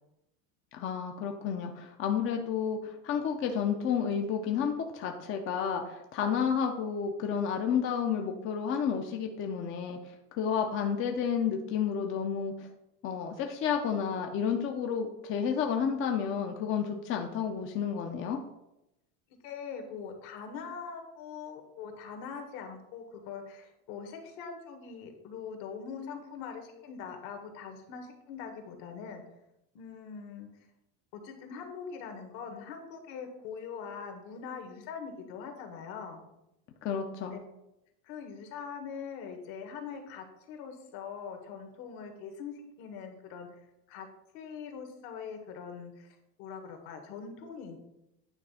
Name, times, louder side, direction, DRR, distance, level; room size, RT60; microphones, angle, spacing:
voice 1, 0.7-10.0 10.3-12.5 13.0-18.4 36.8-37.4, left 7 dB, 30° left, 4 dB, 0.6 m, -31 dB
voice 2, 19.4-29.2 29.7-30.5 31.1-36.2 37.3-37.4 38.0-43.6 43.9-44.1 44.3-47.8, left 6 dB, 65° left, 4 dB, 1.6 m, -42 dB
9.4 x 3.2 x 5.5 m, 0.87 s
cardioid pair, 155°, 41 cm